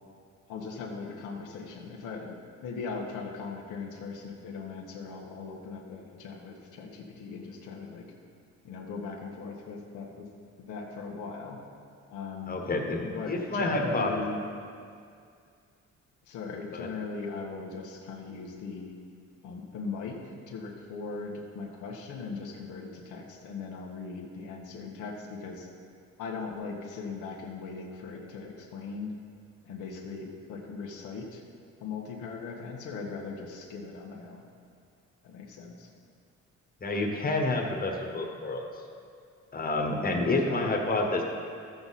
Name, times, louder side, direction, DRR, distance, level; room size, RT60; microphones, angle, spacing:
voice 1, 0.5-8.1 8.6-10.3 10.6-11.6 12.1-12.6 13.0-14.5 16.3-18.9 19.4-25.7 26.2-29.1 29.6-31.4 31.8-34.5 35.2-35.9 40.1-40.7, left 4 dB, 90° left, -1 dB, 1.4 m, -39 dB
voice 2, 12.5-14.1 16.8-16.9 36.8-38.6 39.5-41.2, left 2 dB, 30° left, 1 dB, 1.5 m, -28 dB
13.0 x 7.8 x 4.2 m, 2.3 s
cardioid pair, 90°, 30 cm